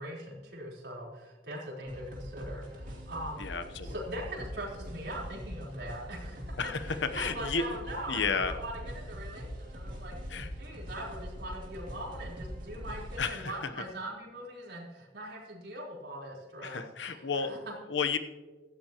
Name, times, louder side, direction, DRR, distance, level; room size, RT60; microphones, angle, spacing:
voice 1, 0.0-3.5 3.8-6.6 6.8-10.2 10.6-16.8 17.1-17.7, right 1 dB, 70° right, -3 dB, 4.1 m, -41 dB
sound 1, 1.9-13.2, equal, 45° right, 2.7 m, -42 dB
voice 2, 3.4-3.9 6.6-7.7 8.1-8.5 10.3-10.5 13.2-13.7 16.6-17.5 17.9-18.2, left 5 dB, 90° left, 10 dB, 0.9 m, -32 dB
16.5 x 13.5 x 3.0 m, 1.3 s
head